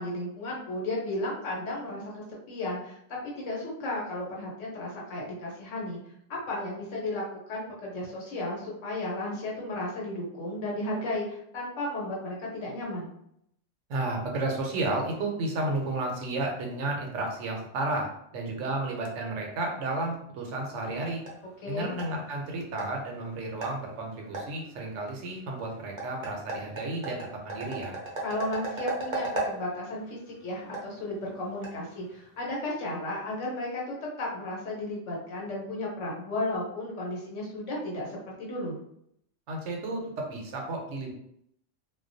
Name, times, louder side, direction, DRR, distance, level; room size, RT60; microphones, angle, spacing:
voice 1, 0.0-3.0 3.2-6.0 6.5-13.1 21.6-21.9 28.2-38.8, left 1 dB, 80° left, -3 dB, 1.1 m, -34 dB
voice 2, 13.9-21.2 21.7-28.0 39.5-41.1, right 2 dB, 80° right, 1 dB, 0.9 m, -32 dB
sound 1, 20.6-32.4, right 2 dB, 45° right, 0.6 m, -39 dB
2.3 x 2.2 x 2.5 m, 0.73 s
omnidirectional pair, 1.3 m